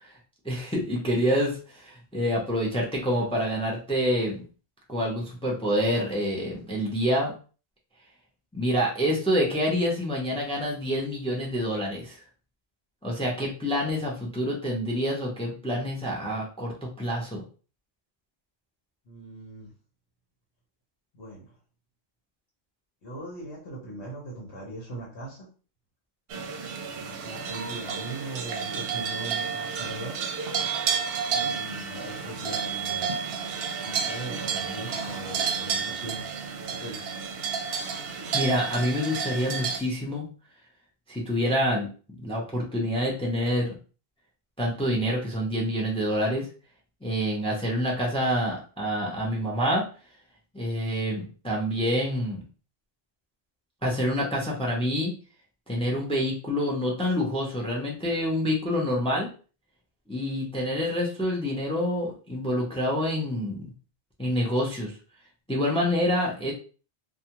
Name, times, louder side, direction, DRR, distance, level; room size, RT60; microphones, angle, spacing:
voice 1, 0.4-4.4 4.9-7.3 8.5-12.2 13.0-17.4 38.3-40.2 41.1-41.9 42.2-43.7 44.6-46.5 47.0-49.8 50.5-52.4 53.8-55.1 55.7-59.3 60.1-63.7 64.2-64.9 65.5-66.5, equal, 5° left, -2 dB, 0.5 m, -27 dB
voice 2, 19.0-19.7 21.1-21.5 23.0-25.5 26.9-30.1 31.3-33.1 33.8-36.2 36.7-37.2, right 1 dB, 70° left, -4 dB, 1.1 m, -40 dB
sound 1, 26.3-39.8, right 6 dB, 70° right, 0.8 m, -31 dB
2.4 x 2.3 x 2.8 m, 0.38 s
omnidirectional pair, 1.1 m